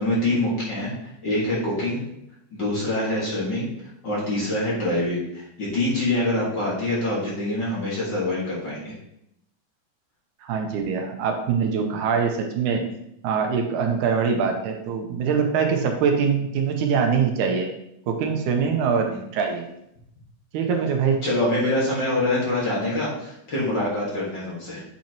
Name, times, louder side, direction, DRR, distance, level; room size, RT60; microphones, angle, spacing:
voice 1, 0.0-2.0 2.5-3.7 4.0-8.9 21.2-24.8, left 1 dB, 40° left, -6 dB, 2.0 m, -25 dB
voice 2, 10.4-12.9 13.2-17.7 18.1-19.7 20.5-21.2, right 6 dB, 80° right, 3 dB, 2.2 m, -23 dB
9.0 x 5.7 x 2.9 m, 0.77 s
omnidirectional pair, 3.7 m